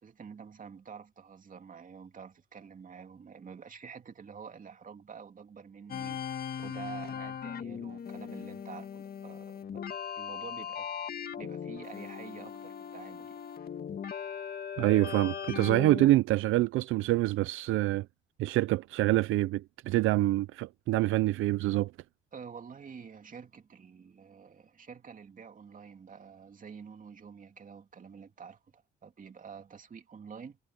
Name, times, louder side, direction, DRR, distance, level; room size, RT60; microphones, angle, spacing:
voice 1, 0.0-6.2 6.6-10.9 11.4-13.4 22.3-30.6, right 6 dB, 40° right, 2.6 m, -48 dB
sound 1, 5.9-16.1, left 8 dB, 50° left, 1.8 m, -39 dB
voice 2, 14.8-18.1 18.4-21.9, right 16 dB, 85° right, 0.5 m, -26 dB
cardioid pair, 90°, 20 cm